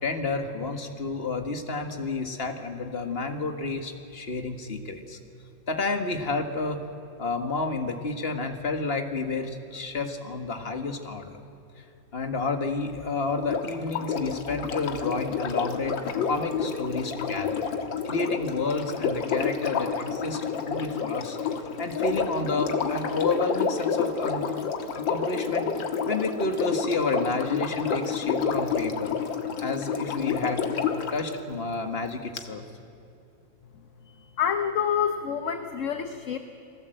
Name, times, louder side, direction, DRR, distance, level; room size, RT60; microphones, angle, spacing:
voice 1, 0.0-5.2 5.7-6.8 7.2-11.3 12.1-16.0 16.2-17.7 18.0-21.4 21.8-24.4 24.9-29.2 29.6-30.6 31.1-32.6, left 3 dB, 35° left, 6 dB, 1.8 m, -30 dB
Sink (filling or washing), 13.4-31.2 32.4-32.5, left 6 dB, 85° left, 2.1 m, -29 dB
voice 2, 34.4-36.4, left 8 dB, 50° left, 7 dB, 1.1 m, -27 dB
30.0 x 19.5 x 7.8 m, 2.6 s
omnidirectional pair, 2.0 m